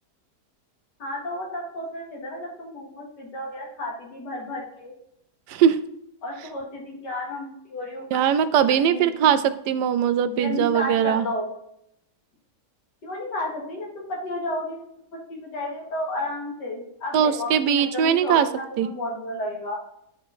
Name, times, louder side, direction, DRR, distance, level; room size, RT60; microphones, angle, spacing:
voice 1, 1.0-4.9 6.2-8.4 8.7-9.3 10.3-11.5 13.0-14.8 15.3-19.8, left 1 dB, 85° left, -1 dB, 2.7 m, -32 dB
voice 2, 8.1-11.3 17.1-18.5 18.8-18.9, right 8 dB, 80° right, 12 dB, 1.2 m, -20 dB
9.2 x 4.6 x 4.2 m, 0.76 s
omnidirectional pair, 1.8 m